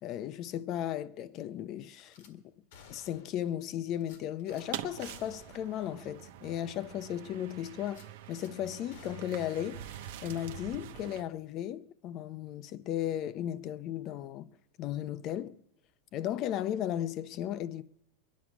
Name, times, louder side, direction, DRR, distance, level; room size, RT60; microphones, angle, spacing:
voice 1, 0.0-2.4 2.9-14.5 14.8-15.6 16.1-17.8, left 11 dB, 40° left, 0.6 m, -36 dB
Gunshot gunfire / Glass, 2.1-2.3 2.7-3.5 4.0-4.7 5.0-5.7 6.0-6.1 6.6-6.7 7.9-8.5 8.9-10.7 11.0-11.2, left 6 dB, 75° left, 1.9 m, -57 dB
sound 1, 4.5-11.2, right 11 dB, 70° right, 0.9 m, -45 dB
22.5 x 10.5 x 6.0 m
supercardioid pair, 145°, 0 cm